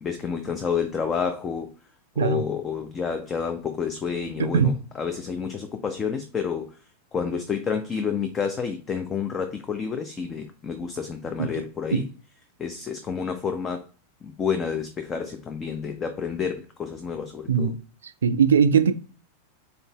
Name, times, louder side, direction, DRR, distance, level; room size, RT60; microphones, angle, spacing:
voice 1, 0.0-1.7 2.2-6.8 7.1-12.1 12.6-13.8 14.2-17.7, left 6 dB, 20° left, 0.5 m, -29 dB
voice 2, 4.4-4.7 11.4-11.5 11.9-12.0 17.5-17.7 18.2-18.9, right 7 dB, 65° right, 0.4 m, -20 dB
3.8 x 3.8 x 2.2 m
figure-of-eight pair, 90°, 0 cm